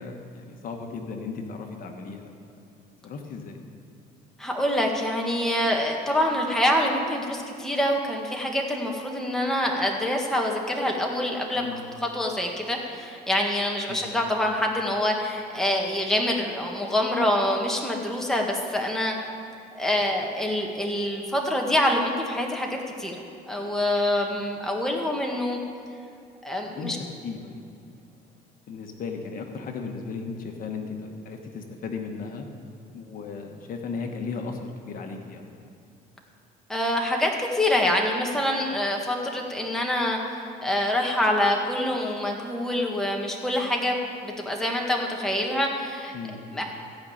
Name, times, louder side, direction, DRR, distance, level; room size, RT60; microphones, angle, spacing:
voice 1, 0.0-2.3 3.0-3.6 11.5-11.9 13.9-14.1 20.0-20.1 26.6-27.0 27.2-27.6 27.9-28.0 28.7-32.5 32.9-35.7 46.1-46.4, left 4 dB, 55° left, 3 dB, 1.4 m, -36 dB
voice 2, 4.4-11.7 12.0-19.1 19.7-23.2 23.5-25.6 26.4-27.0 36.7-46.1 46.5-46.6, left 1 dB, 5° left, 0 dB, 1.7 m, -26 dB
15.5 x 5.4 x 8.8 m, 2.5 s
cardioid pair, 110°, 17 cm